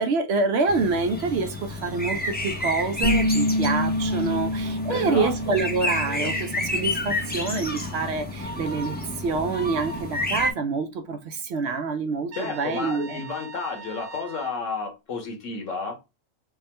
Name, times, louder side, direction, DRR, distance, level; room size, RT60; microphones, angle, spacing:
voice 1, 0.0-13.2, right 4 dB, 65° right, 0.7 m, -27 dB
sound 1, 0.7-10.5, left 1 dB, 10° left, 0.5 m, -30 dB
sound 2, 3.0-8.4, left 1 dB, 60° left, 1.1 m, -28 dB
voice 2, 4.9-5.5 6.1-6.3 12.3-16.0, left 4 dB, 75° left, 1.3 m, -32 dB
Trumpet, 12.3-14.6, right 5 dB, 85° right, 0.3 m, -41 dB
3.5 x 2.1 x 4.2 m
omnidirectional pair, 1.3 m